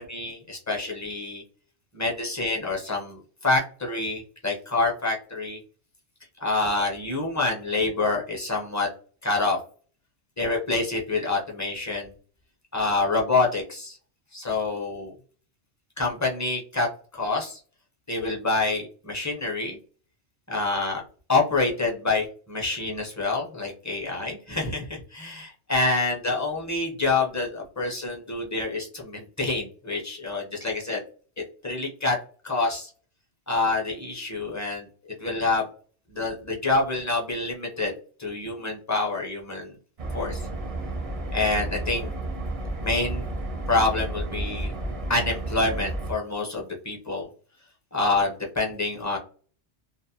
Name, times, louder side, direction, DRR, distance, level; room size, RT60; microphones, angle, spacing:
voice 1, 0.1-1.4 1.9-5.6 6.4-8.9 9.2-9.6 10.4-12.1 12.7-14.0 14.3-15.1 16.0-16.9 17.1-17.6 18.1-19.8 20.5-21.0 21.3-31.0 31.6-32.2 32.4-32.9 33.5-34.9 35.2-35.7 36.1-37.9 38.2-39.7 40.1-40.4 41.3-42.1 42.8-43.3 43.7-44.7 45.1-47.3 47.9-49.2, left 3 dB, 25° left, -2 dB, 0.4 m, -27 dB
sound 1, 40.0-46.1, right 2 dB, 45° right, 0.4 m, -31 dB
2.5 x 2.0 x 2.6 m, 0.41 s
omnidirectional pair, 1.2 m